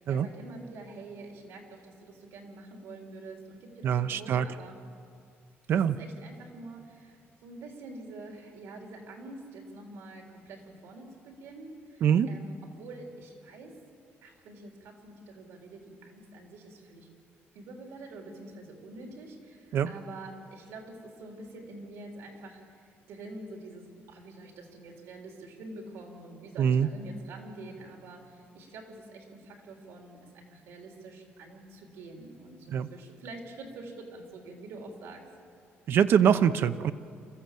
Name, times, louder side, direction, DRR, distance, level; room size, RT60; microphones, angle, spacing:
voice 1, 0.0-4.8 5.8-13.8 14.2-17.1 17.5-35.3, right 2 dB, 90° right, 1 dB, 3.9 m, -46 dB
voice 2, 3.8-4.5 5.7-5.9 12.0-12.3 19.7-19.9 26.6-26.9 32.7-32.9 35.9-36.9, right 8 dB, 55° right, 12 dB, 0.7 m, -23 dB
27.5 x 14.5 x 7.7 m, 2.3 s
cardioid pair, 170°, 5 cm